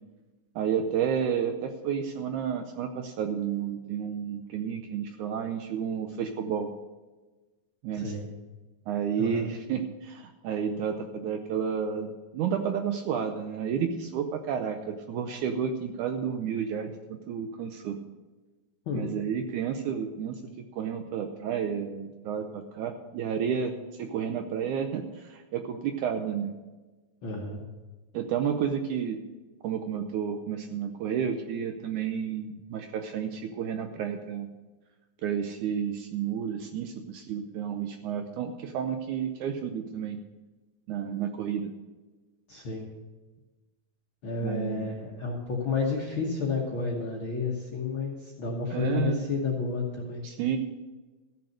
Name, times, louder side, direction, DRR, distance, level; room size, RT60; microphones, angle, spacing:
voice 1, 0.6-6.7 7.8-8.1 8.9-18.0 18.9-20.4 20.7-26.5 28.1-29.2 29.6-34.5 35.2-40.2 40.9-41.7 44.4-44.9 48.7-49.3 50.2-50.6, right 7 dB, 80° right, 6 dB, 1.9 m, -31 dB
voice 2, 9.2-9.5 18.9-19.1 27.2-27.6 42.5-42.9 44.2-50.2, left 4 dB, 65° left, -1 dB, 1.2 m, -31 dB
14.5 x 6.8 x 6.4 m, 1.2 s
omnidirectional pair, 4.1 m